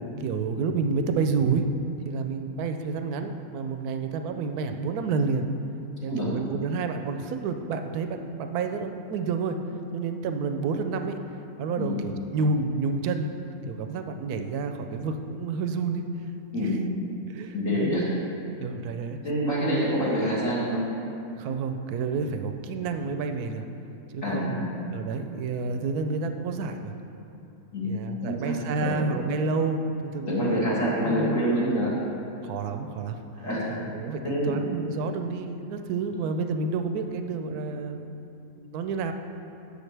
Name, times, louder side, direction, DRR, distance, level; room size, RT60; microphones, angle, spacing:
voice 1, 0.2-1.6 2.0-5.5 6.0-9.6 9.9-11.1 11.6-13.3 13.7-16.0 16.6-16.7 17.3-17.9 18.6-19.2 21.4-23.6 24.1-26.9 27.8-30.8 31.1-31.4 32.4-33.2 33.9-38.1 38.6-39.1, right 4 dB, 80° right, 6 dB, 1.1 m, -29 dB
voice 2, 17.5-18.0 19.2-20.8 24.2-24.8 27.7-28.0 28.2-29.0 30.3-31.9 33.4-33.6 34.2-34.5, equal, 60° left, -8 dB, 2.5 m, -26 dB
11.5 x 6.8 x 3.3 m, 2.9 s
omnidirectional pair, 1.6 m